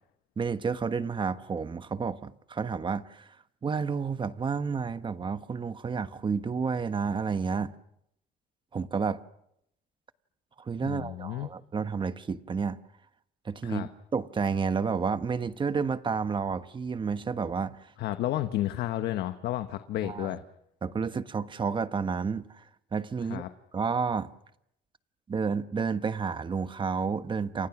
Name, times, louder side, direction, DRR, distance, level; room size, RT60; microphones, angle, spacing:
voice 1, 0.4-3.3 3.6-7.8 8.7-9.2 10.6-12.8 13.4-17.9 20.0-20.4 20.8-22.6 22.9-23.5 23.7-24.3 25.3-27.7, right 5 dB, 30° right, 1.2 m, -30 dB
voice 2, 10.8-11.5 13.6-13.9 18.0-20.4 23.3-23.5, left 13 dB, 75° left, 1.2 m, -31 dB
29.5 x 26.0 x 6.1 m
cardioid pair, 110°, 17 cm